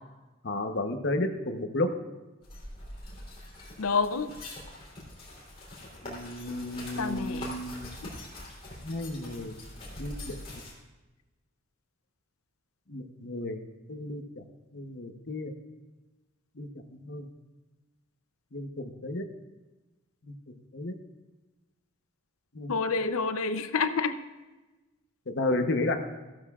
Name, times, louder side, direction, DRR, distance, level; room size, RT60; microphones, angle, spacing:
voice 1, 0.4-1.9 6.0-8.0 8.8-9.5 10.0-10.4 12.9-13.6 13.9-14.4 14.7-15.5 16.6-17.3 18.5-19.2 20.2-20.4 20.7-20.9 22.5-22.8 25.3-26.0, left 2 dB, 55° left, 5 dB, 1.0 m, -32 dB
sound 1, 2.4-10.7, left 1 dB, 30° left, 3.2 m, -44 dB
voice 2, 3.8-4.3 7.0-7.5 22.7-24.2, left 4 dB, 85° left, 11 dB, 0.7 m, -28 dB
15.0 x 12.5 x 2.4 m, 1.2 s
head